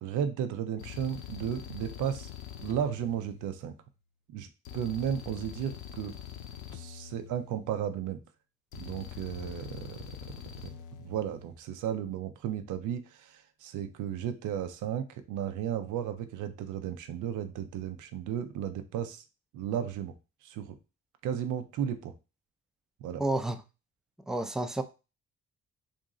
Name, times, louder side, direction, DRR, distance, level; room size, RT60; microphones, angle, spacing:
voice 1, 0.0-2.3 2.6-3.8 4.3-4.5 4.7-6.1 6.7-8.2 8.7-19.2 19.5-20.2 20.4-20.8 21.2-22.1 23.0-23.2, right 9 dB, 80° right, 8 dB, 0.6 m, -34 dB
sound 1, 0.8-3.9 4.6-7.9 8.7-11.6, left 9 dB, 80° left, 0.6 m, -44 dB
voice 2, 23.2-23.6 24.3-24.8, right 2 dB, ahead, 8 dB, 0.4 m, -30 dB
2.9 x 2.6 x 3.7 m, 0.29 s
cardioid pair, 90°, 30 cm